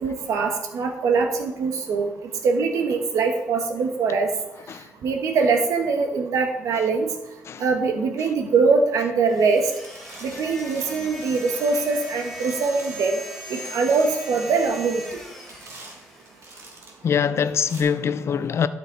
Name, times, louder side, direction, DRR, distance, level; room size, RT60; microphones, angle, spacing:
voice 1, 0.0-2.1 2.4-4.3 5.0-7.1 7.6-9.7 10.2-13.2 13.5-15.0, right 4 dB, 85° right, 1.4 m, -22 dB
sound 1, 9.3-16.6, left 1 dB, 5° left, 2.3 m, -39 dB
sound 2, 9.3-9.6 9.8-17.1 17.6-17.8, right 2 dB, 60° right, 2.7 m, -46 dB
voice 2, 17.0-18.7, left 7 dB, 55° left, 0.5 m, -23 dB
12.0 x 6.3 x 4.0 m
cardioid pair, 105°, 5 cm